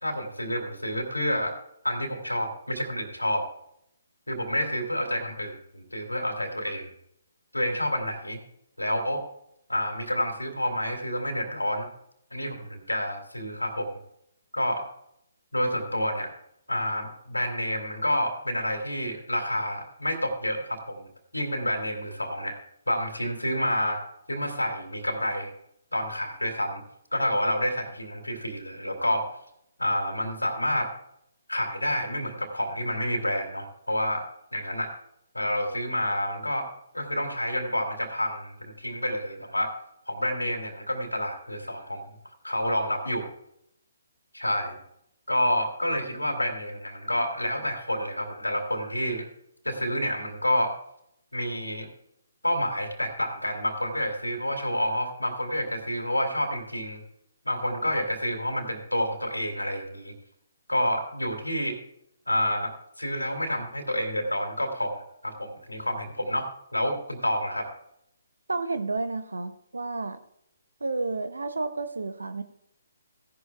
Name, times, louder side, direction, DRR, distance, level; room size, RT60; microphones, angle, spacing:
voice 1, 0.0-1.5 1.8-3.5 4.3-6.9 7.5-8.4 8.8-9.2 9.7-11.9 12.3-13.9 14.5-14.9 15.5-16.3 16.7-21.1 21.3-22.6 22.9-24.0 24.3-25.5 25.9-26.8 27.1-29.3 29.8-30.9 31.5-34.3 34.5-34.9 35.3-36.7 36.9-39.7 40.1-42.0 42.4-43.3 44.3-44.8 45.3-49.3 49.6-50.7 51.3-51.9 52.4-57.0 57.4-60.1 60.7-61.8 62.3-62.7 63.0-67.7, equal, 90° left, 4 dB, 2.4 m, -29 dB
voice 2, 68.5-70.2 70.8-72.4, right 3 dB, 75° right, 10 dB, 0.8 m, -31 dB
16.0 x 11.0 x 2.3 m, 0.75 s
figure-of-eight pair, 135°, 0 cm